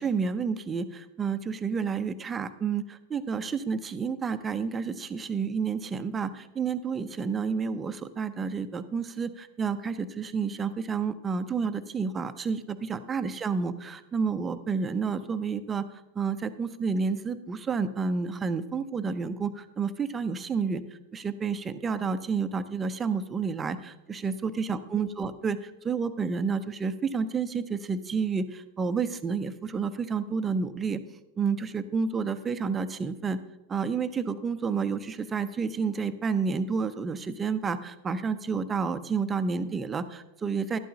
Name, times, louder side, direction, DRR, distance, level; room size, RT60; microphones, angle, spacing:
voice 1, 0.0-15.9 16.2-20.8 21.1-31.0 31.4-33.4 33.7-40.8, right 5 dB, 20° right, 12 dB, 0.6 m, -30 dB
12.0 x 12.0 x 2.8 m, 0.93 s
figure-of-eight pair, 90°, 0 cm